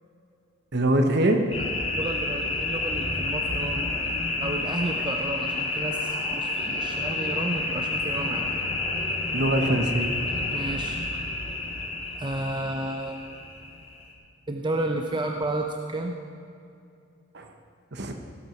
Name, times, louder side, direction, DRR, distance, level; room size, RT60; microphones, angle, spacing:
voice 1, 0.7-1.4 9.3-10.1 17.3-17.5 17.9-18.1, right 1 dB, 60° right, 5 dB, 1.2 m, -23 dB
sound 1, 1.5-14.1, left 2 dB, 30° left, 2.0 m, -29 dB
voice 2, 1.9-3.9 4.4-8.7 10.5-11.0 12.2-13.2 14.5-16.2, right 2 dB, 25° right, 3 dB, 0.7 m, -31 dB
17.0 x 8.1 x 5.8 m, 2.5 s
head